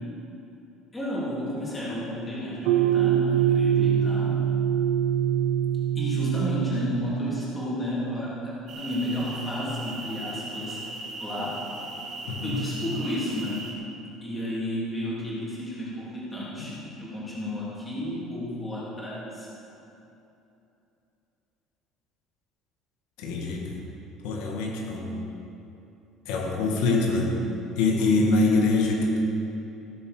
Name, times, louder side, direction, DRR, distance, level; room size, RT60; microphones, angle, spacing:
voice 1, 0.9-4.4 5.9-10.8 11.2-11.6 12.4-13.7 14.2-16.7 17.0-19.5, left 1 dB, 15° left, -7 dB, 3.3 m, -32 dB
sound 1, 2.7-7.9, right 9 dB, 75° right, 0.8 m, -24 dB
sound 2, 8.7-13.7, right 2 dB, 40° right, 2.5 m, -38 dB
voice 2, 12.2-12.7 16.6-16.7 23.2-23.8 24.2-25.2 26.3-27.4 27.7-29.2, left 3 dB, 90° left, -1 dB, 2.1 m, -24 dB
16.5 x 7.6 x 6.8 m, 2.9 s
cardioid pair, 175°, 0 cm